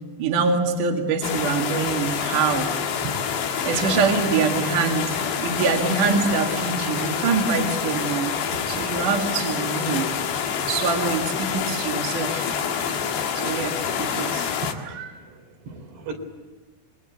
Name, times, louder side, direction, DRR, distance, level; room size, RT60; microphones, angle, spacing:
voice 1, 0.2-2.7 3.5-8.4 8.7-10.1 10.7-12.5 13.3-15.1, right 5 dB, 55° right, 2 dB, 3.4 m, -25 dB
sound 1, 1.2-14.7, left 7 dB, 80° left, 4.1 m, -27 dB
voice 2, 3.7-4.1 14.6-15.0 15.7-16.1, right 3 dB, 75° right, 4 dB, 5.7 m, -34 dB
27.0 x 22.5 x 8.4 m, 1.4 s
omnidirectional pair, 4.8 m